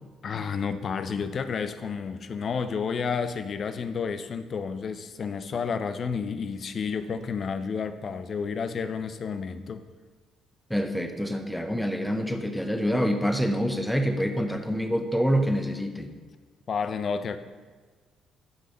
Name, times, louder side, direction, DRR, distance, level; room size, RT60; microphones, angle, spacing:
voice 1, 0.2-9.8 16.7-17.4, left 6 dB, 50° left, 11 dB, 0.6 m, -31 dB
voice 2, 10.7-16.1, equal, 5° left, 6 dB, 1.0 m, -26 dB
10.5 x 5.6 x 3.9 m, 1.4 s
hypercardioid pair, 55°, 0 cm